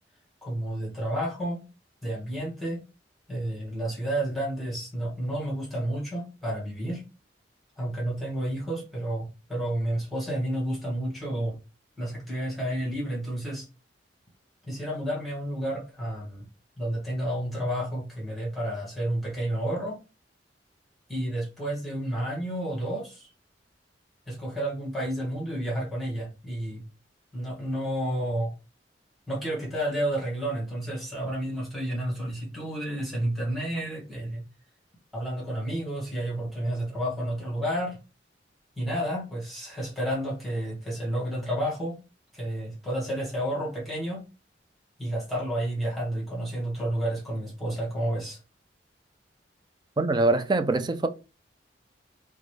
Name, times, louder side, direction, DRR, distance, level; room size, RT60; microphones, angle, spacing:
voice 1, 0.4-1.6 2.0-2.8 3.3-7.0 7.8-11.6 12.0-13.6 14.7-16.5 16.8-20.0 21.1-23.3 24.3-26.8 27.3-28.5 29.3-34.4 35.1-38.0 38.8-42.0 42.3-44.2 45.0-48.4, right 1 dB, ahead, 1.6 m, -31 dB
voice 2, 50.0-51.1, right 2 dB, 25° right, 0.4 m, -23 dB
5.0 x 2.2 x 3.2 m
head